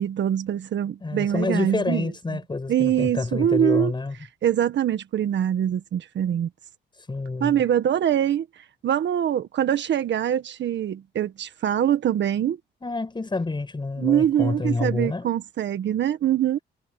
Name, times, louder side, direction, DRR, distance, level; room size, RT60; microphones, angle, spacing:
voice 1, 0.0-2.4 2.7-3.9 4.4-6.5 7.4-8.5 8.8-12.6 14.0-16.6, right 10 dB, 65° right, 1.6 m, -23 dB
voice 2, 1.0-4.1 7.1-7.6 12.8-15.3, left 3 dB, 25° left, 7.6 m, -28 dB
cardioid pair, 90°, 20 cm